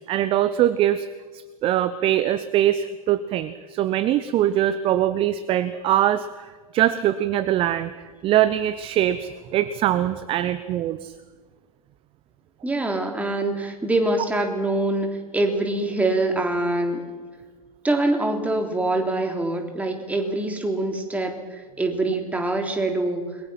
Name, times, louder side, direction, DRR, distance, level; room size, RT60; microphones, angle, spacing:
voice 1, 0.1-1.1 1.3-6.3 6.7-7.9 8.2-11.1, right 12 dB, 30° right, 14 dB, 0.9 m, -22 dB
voice 2, 12.6-15.1 15.3-17.0 17.8-23.3, right 2 dB, 10° right, 3 dB, 3.5 m, -24 dB
29.5 x 22.0 x 5.9 m, 1.4 s
figure-of-eight pair, 95°, 19 cm